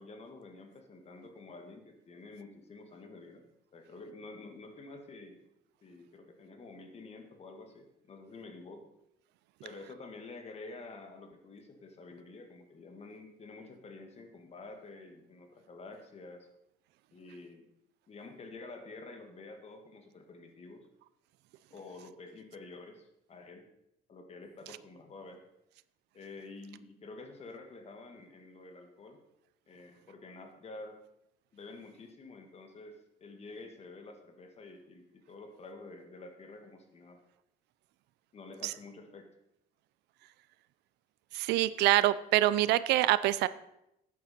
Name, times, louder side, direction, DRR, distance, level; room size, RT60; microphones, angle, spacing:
voice 1, 0.0-3.4 3.7-5.4 5.8-8.9 9.6-16.5 17.1-17.7 18.1-20.9 21.7-23.6 24.1-25.4 26.1-29.2 29.7-31.0 31.5-37.2 38.3-39.3, left 3 dB, 40° left, 5 dB, 1.9 m, -49 dB
voice 2, 41.3-43.5, right 15 dB, 85° right, 17 dB, 0.5 m, -25 dB
12.5 x 9.4 x 4.3 m, 0.83 s
cardioid pair, 110°, 17 cm